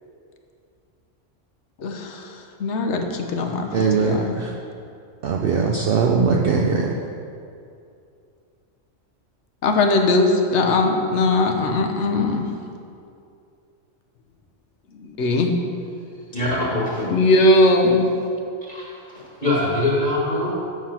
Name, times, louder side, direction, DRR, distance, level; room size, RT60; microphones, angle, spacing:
voice 1, 1.8-2.2 2.6-4.3 9.6-12.4 15.0-15.6 17.1-18.1, left 2 dB, 70° left, 4 dB, 1.0 m, -19 dB
voice 2, 3.7-4.5 5.2-6.9, right 5 dB, 60° right, 0 dB, 0.6 m, -20 dB
voice 3, 16.3-17.1 18.7-20.5, left 1 dB, 40° left, -6 dB, 1.6 m, -23 dB
7.4 x 4.7 x 5.6 m, 2.5 s
omnidirectional pair, 1.3 m